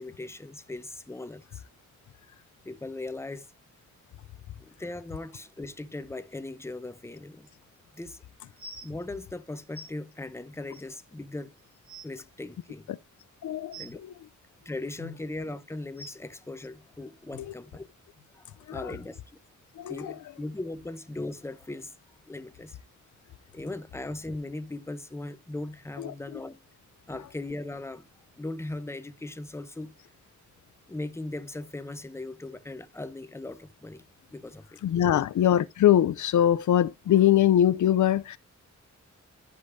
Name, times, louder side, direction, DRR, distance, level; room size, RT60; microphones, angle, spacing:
voice 1, 0.0-1.6 2.6-3.5 4.6-7.5 7.9-8.2 8.8-11.5 12.0-12.9 13.8-14.0 14.6-17.8 18.3-19.2 19.9-21.9 22.2-22.8 23.5-26.6 27.1-28.1 28.4-29.9 30.9-34.0 34.3-35.2, left 2 dB, 10° left, 0.7 m, -38 dB
sound 1, 8.6-8.9 9.7-9.9 10.7-10.8 11.4-11.5 11.7-12.1 13.7-13.9 14.9-15.2 16.0-16.1 17.3-17.4 18.1-18.2 18.9-19.0, equal, 20° right, 2.8 m, -44 dB
voice 2, 13.4-14.1 17.4-17.5 18.7-19.0 19.8-20.2 26.0-26.4 34.8-38.4, left 11 dB, 80° left, 0.5 m, -23 dB
13.5 x 5.3 x 2.6 m
wide cardioid pair, 115°, 30 cm